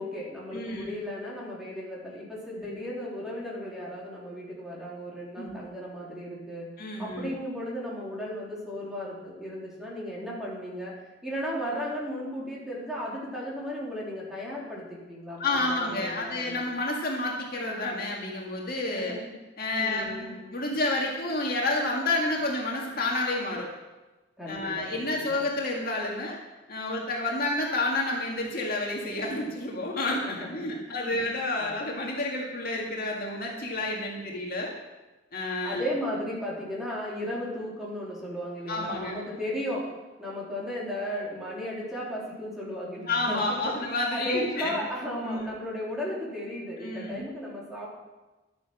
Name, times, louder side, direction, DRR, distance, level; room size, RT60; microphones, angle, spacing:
voice 1, 0.0-6.7 7.0-10.9 11.2-16.7 18.9-19.2 19.8-20.5 24.4-25.2 30.3-31.1 31.6-31.7 35.6-39.9 40.2-43.8 44.1-47.9, equal, 5° right, -6 dB, 3.4 m, -35 dB
voice 2, 0.5-0.9 5.4-5.6 6.8-7.3 15.4-19.1 19.6-23.7 24.5-26.4 26.7-34.7 35.3-35.8 38.7-39.2 43.1-44.8 45.2-45.5 46.8-47.2, left 2 dB, 55° left, -1 dB, 2.0 m, -30 dB
12.0 x 8.7 x 6.2 m, 1.1 s
head